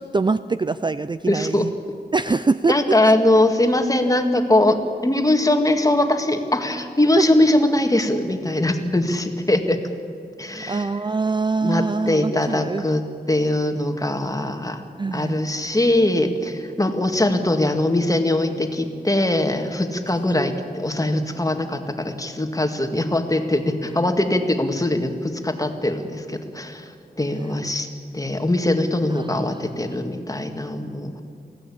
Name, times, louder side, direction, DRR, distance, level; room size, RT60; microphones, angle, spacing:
voice 1, 0.0-1.7 2.1-2.7 7.2-7.3 10.7-12.8 15.0-15.4 29.2-29.4 29.7-29.8, right 3 dB, 25° right, 13 dB, 0.4 m, -23 dB
voice 2, 1.3-1.7 2.7-9.8 10.4-10.9 11.6-13.0 13.3-14.8 15.1-27.9 28.1-31.2, left 1 dB, 20° left, 6 dB, 2.0 m, -21 dB
24.0 x 16.0 x 8.6 m, 2.4 s
wide cardioid pair, 95°, 17 cm